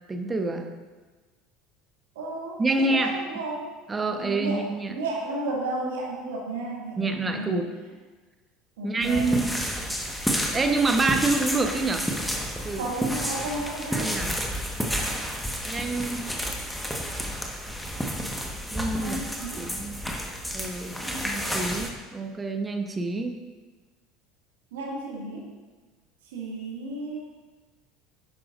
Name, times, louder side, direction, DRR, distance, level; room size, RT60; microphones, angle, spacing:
voice 1, 0.1-0.7 2.6-3.1 3.9-4.9 7.0-7.7 8.8-9.5 10.5-12.0 12.6-12.9 13.9-14.3 15.6-16.3 18.7-19.2 19.6-20.0 20.5-23.4, right 3 dB, 20° right, 5 dB, 1.1 m, -27 dB
voice 2, 2.2-3.7 4.2-7.5 8.8-9.4 12.7-14.3 18.9-19.6 21.0-21.9 24.7-25.5 26.2-27.2, right 2 dB, 65° right, -3 dB, 2.2 m, -33 dB
sound 1, 9.0-21.9, equal, ahead, 1.5 m, -31 dB
11.0 x 10.0 x 2.6 m, 1.3 s
figure-of-eight pair, 65°, 0 cm